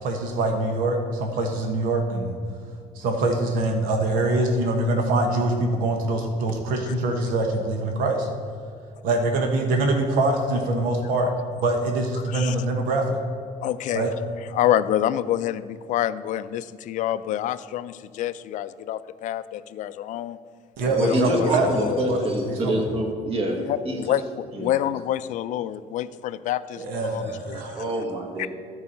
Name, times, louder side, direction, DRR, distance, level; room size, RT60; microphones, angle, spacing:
voice 1, 0.0-2.4 2.9-8.3 9.0-13.2 13.9-14.1 20.8-21.7 22.1-22.8 26.8-27.8, right 2 dB, 80° right, 3 dB, 1.2 m, -24 dB
voice 2, 12.2-12.6 13.6-14.1 14.5-20.4 20.8-22.1 23.6-27.9 28.4-28.5, left 12 dB, 60° left, 14 dB, 0.4 m, -27 dB
voice 3, 21.0-24.0 24.5-24.7 27.7-28.5, right 1 dB, 40° right, 2 dB, 1.6 m, -26 dB
13.0 x 4.8 x 5.5 m, 2.3 s
cardioid pair, 130°, 14 cm